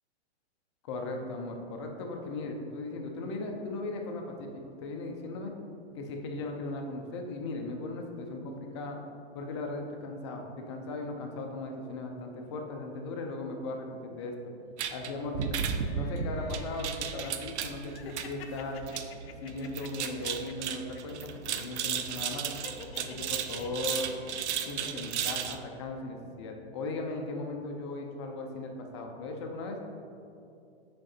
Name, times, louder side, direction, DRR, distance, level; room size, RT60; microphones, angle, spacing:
voice 1, 0.8-4.5 4.8-5.5 5.9-9.0 9.3-14.4 14.9-15.6 15.9-18.8 19.4-22.5 23.0-24.1 24.7-29.8, left 2 dB, 25° left, 2 dB, 0.4 m, -37 dB
sound 1, 14.8-25.6, right 7 dB, 75° right, 0.6 m, -35 dB
sound 2, 15.6-17.3 17.8-21.3 21.5-21.9 22.6-25.1 25.4-25.5, left 7 dB, 60° left, 0.7 m, -50 dB
6.3 x 4.8 x 4.2 m, 2.6 s
hypercardioid pair, 155°, 34 cm